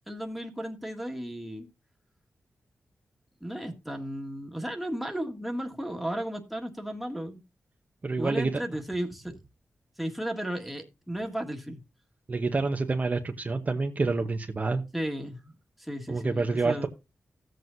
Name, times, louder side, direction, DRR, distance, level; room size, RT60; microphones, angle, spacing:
voice 1, 0.1-1.7 3.4-7.4 8.2-9.3 10.0-11.8 14.9-16.9, right 1 dB, ahead, 1.7 m, -34 dB
voice 2, 8.0-8.6 12.3-14.8 16.1-16.9, right 3 dB, 35° right, 0.9 m, -28 dB
15.5 x 7.8 x 2.6 m
wide cardioid pair, 115°, 5 cm